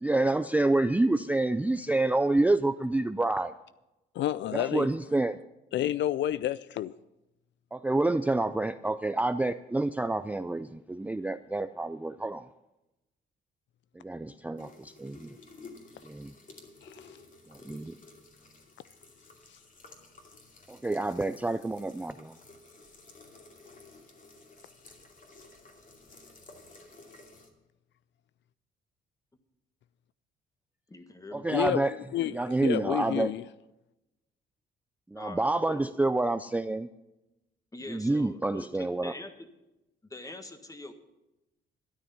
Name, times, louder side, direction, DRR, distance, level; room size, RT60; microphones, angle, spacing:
voice 1, 0.0-3.5 4.5-5.4 7.7-12.4 14.0-15.3 16.0-16.3 17.7-18.0 20.7-22.3 31.3-32.0 32.3-33.3 35.1-36.9 37.9-39.1, right 2 dB, 10° right, 0.4 m, -28 dB
voice 2, 4.1-4.9 5.7-6.9 16.8-17.1 31.5-33.4, left 12 dB, 70° left, 0.4 m, -30 dB
sound 1, 14.6-27.5, left 3 dB, 40° left, 2.4 m, -53 dB
voice 3, 30.9-31.5 35.2-36.0 37.7-39.5 40.1-40.9, left 2 dB, 15° left, 1.5 m, -44 dB
12.5 x 10.0 x 5.6 m
cardioid pair, 90°, 20 cm